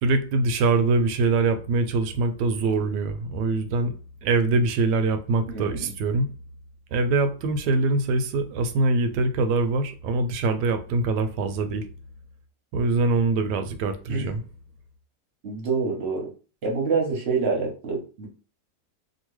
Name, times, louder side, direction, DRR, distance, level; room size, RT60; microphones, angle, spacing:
voice 1, 0.0-3.9 4.2-6.3 6.9-11.8 12.7-14.4, right 3 dB, 75° right, 1.1 m, -23 dB
voice 2, 5.5-5.9 14.1-14.3 15.4-16.3 16.6-18.3, right 4 dB, 50° right, 0.8 m, -26 dB
2.9 x 2.5 x 3.1 m
omnidirectional pair, 1.9 m